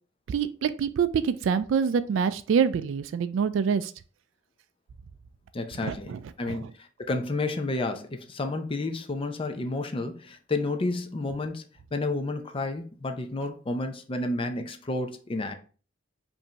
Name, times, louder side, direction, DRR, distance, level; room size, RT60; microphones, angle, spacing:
voice 1, 0.3-3.9 5.8-6.2 6.5-6.6, right 6 dB, 70° right, 0.3 m, -26 dB
voice 2, 5.5-6.1 6.4-6.6 7.0-11.6 11.9-15.5, left 2 dB, 30° left, 0.5 m, -30 dB
5.2 x 2.6 x 2.8 m
head